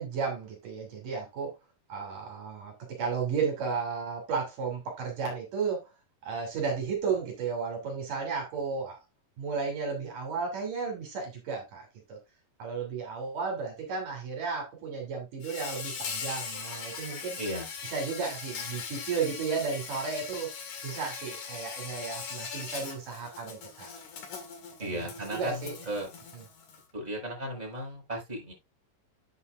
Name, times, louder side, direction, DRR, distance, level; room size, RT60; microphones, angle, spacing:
voice 1, 0.0-1.5 1.9-5.9 6.2-9.0 9.4-12.2 12.6-17.4 17.9-20.5 20.8-23.9 24.8-24.9 25.3-25.8, right 5 dB, 65° right, 4.4 m, -33 dB
Insect, 15.4-26.8, left 6 dB, 65° left, 3.4 m, -40 dB
voice 2, 17.4-17.7 24.8-26.1 26.9-28.5, right 1 dB, 10° right, 5.9 m, -35 dB
9.7 x 9.1 x 2.5 m
omnidirectional pair, 4.0 m